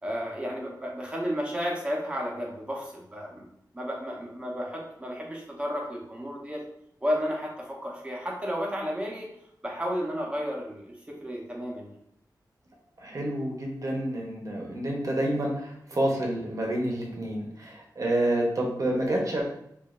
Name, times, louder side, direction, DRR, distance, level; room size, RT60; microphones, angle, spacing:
voice 1, 0.0-3.4 3.7-6.6 7.0-9.3 9.6-11.9, equal, 15° right, -2 dB, 0.9 m, -32 dB
voice 2, 13.0-19.4, right 1 dB, 50° right, -1 dB, 0.9 m, -28 dB
5.0 x 2.6 x 2.5 m, 0.76 s
wide cardioid pair, 115°, 7 cm